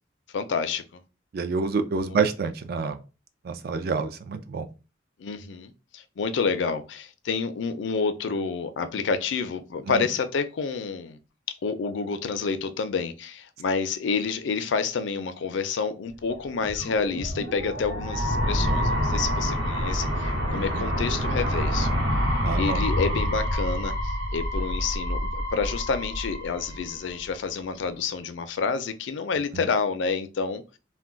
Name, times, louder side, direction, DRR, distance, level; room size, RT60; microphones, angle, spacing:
voice 1, 0.3-1.0 2.1-2.2 5.2-11.2 11.6-21.9 22.6-30.6, left 5 dB, 75° left, 10 dB, 0.4 m, -29 dB
voice 2, 1.3-3.0 3.4-4.7 9.9-10.0 20.5-20.9 22.4-22.8 29.5-29.6, right 4 dB, 55° right, 8 dB, 0.4 m, -28 dB
sound 1, 16.4-27.4, equal, 75° right, 1.0 m, -27 dB
2.2 x 2.2 x 3.7 m, 0.31 s
head